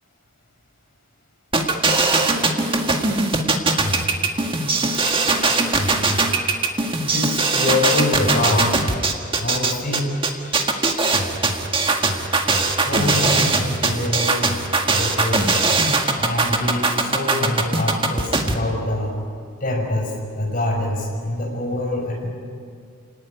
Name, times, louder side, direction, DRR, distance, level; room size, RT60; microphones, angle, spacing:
sound 1, 1.5-18.5, right 3 dB, 25° right, 1.8 m, -20 dB
voice 1, 7.1-8.7 9.4-10.6 12.9-14.4 14.9-15.6 16.2-19.1 19.6-20.1 20.4-22.3, left 2 dB, 40° left, 0 dB, 6.2 m, -24 dB
28.5 x 18.5 x 9.7 m, 2.2 s
head